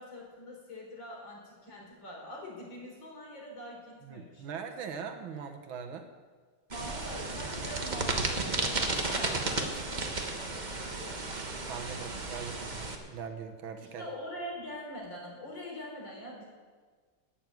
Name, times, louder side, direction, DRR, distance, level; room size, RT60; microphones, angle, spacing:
voice 1, 0.0-4.6 6.7-11.6 13.8-16.5, equal, 65° left, -2 dB, 4.4 m, -44 dB
voice 2, 4.0-6.1 11.7-14.1, right 6 dB, 80° right, 5 dB, 1.9 m, -41 dB
sound 1, 6.7-12.9, right 2 dB, 25° right, 1.1 m, -33 dB
13.5 x 7.1 x 9.2 m, 1.5 s
omnidirectional pair, 2.2 m